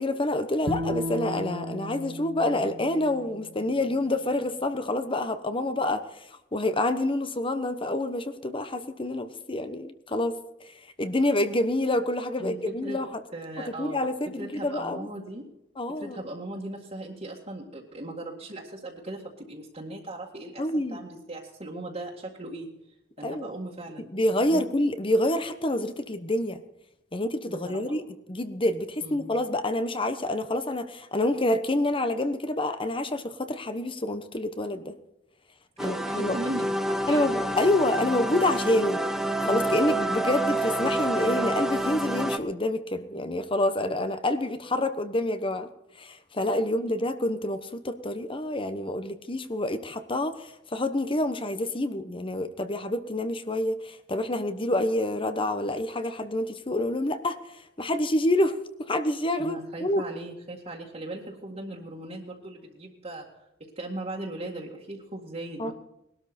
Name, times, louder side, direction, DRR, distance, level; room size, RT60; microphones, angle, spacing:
voice 1, 0.0-10.4 11.0-13.2 13.6-15.1 15.8-16.2 20.6-21.0 23.2-23.5 24.1-26.6 27.1-28.0 28.3-34.9 35.8-36.4 37.1-39.0 39.4-45.7 46.0-57.4 57.8-60.0 65.6-65.7, left 1 dB, 30° left, 10 dB, 1.1 m, -27 dB
Bowed string instrument, 0.7-3.9, equal, 65° right, 1.2 m, -35 dB
voice 2, 12.4-13.0 13.3-14.0 14.4-15.5 15.9-22.7 23.2-24.1 24.4-24.7 27.5-28.0 29.0-29.3 35.8-37.4 59.4-65.7, right 1 dB, 35° right, -4 dB, 2.1 m, -38 dB
sound 1, 35.8-42.4, right 1 dB, 5° right, 0.9 m, -28 dB
20.0 x 12.5 x 4.3 m, 0.85 s
head